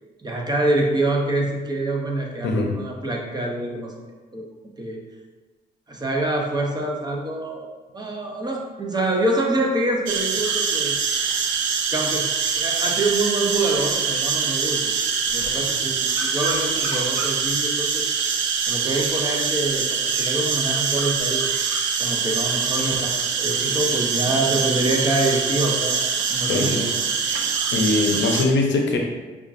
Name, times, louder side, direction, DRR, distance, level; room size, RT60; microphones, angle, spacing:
voice 1, 0.2-3.9 4.3-4.4 4.8-5.0 5.9-11.0 11.9-18.1 18.7-26.0 26.3-26.9, right 2 dB, 20° right, 0 dB, 0.7 m, -26 dB
sound 1, 10.1-28.4, right 6 dB, 75° right, 0.4 m, -24 dB
voice 2, 27.7-29.0, left 3 dB, 75° left, 2 dB, 0.7 m, -21 dB
5.1 x 2.4 x 2.5 m, 1.3 s
cardioid pair, 70°, 19 cm